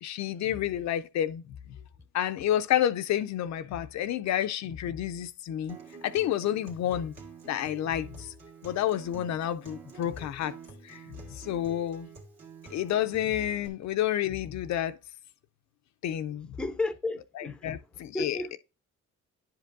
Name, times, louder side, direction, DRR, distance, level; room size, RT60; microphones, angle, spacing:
voice 1, 0.0-1.4 2.1-5.8 6.0-7.1 7.5-8.3 8.6-10.6 10.8-11.0 11.3-12.1 12.7-15.0 16.0-16.5 17.4-18.6, left 11 dB, 65° left, 0.5 m, -30 dB
Acoustic guitar, 5.7-13.7, right 5 dB, 60° right, 1.9 m, -48 dB
voice 2, 16.6-17.8 18.1-18.5, left 2 dB, 5° left, 0.5 m, -33 dB
10.0 x 5.2 x 2.5 m
cardioid pair, 90°, 30 cm